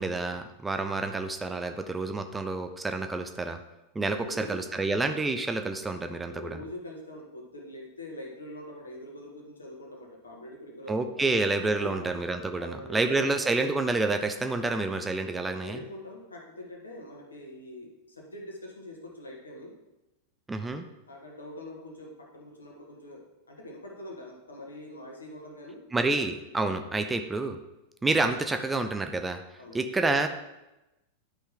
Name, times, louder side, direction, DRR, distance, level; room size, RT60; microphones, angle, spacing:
voice 1, 0.0-3.6 3.9-6.6 10.9-15.8 20.5-20.9 25.9-27.6 28.0-29.4 29.7-30.3, right 3 dB, 10° right, 6 dB, 0.6 m, -28 dB
voice 2, 4.0-4.6 6.3-11.4 11.8-12.1 12.6-13.3 15.6-19.8 21.1-25.9 29.6-29.9, left 1 dB, 75° left, 1 dB, 1.7 m, -44 dB
11.0 x 5.6 x 3.8 m, 0.96 s
figure-of-eight pair, 90°, 0 cm